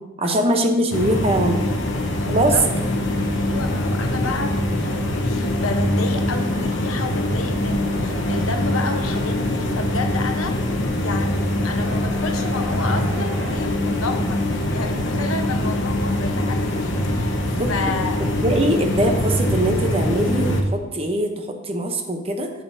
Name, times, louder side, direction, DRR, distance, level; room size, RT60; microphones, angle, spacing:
voice 1, 0.2-1.6 2.3-2.5 17.6-17.9 18.2-22.5, right 1 dB, 30° right, 4 dB, 0.8 m, -22 dB
sound 1, 0.9-20.6, left 1 dB, 60° left, 1.0 m, -23 dB
voice 2, 2.2-2.6 3.3-10.6 11.0-18.2, left 3 dB, 90° left, 5 dB, 1.0 m, -31 dB
sound 2, 2.6-13.6, right 1 dB, 70° right, 1.9 m, -43 dB
10.5 x 7.5 x 2.7 m, 1.1 s
head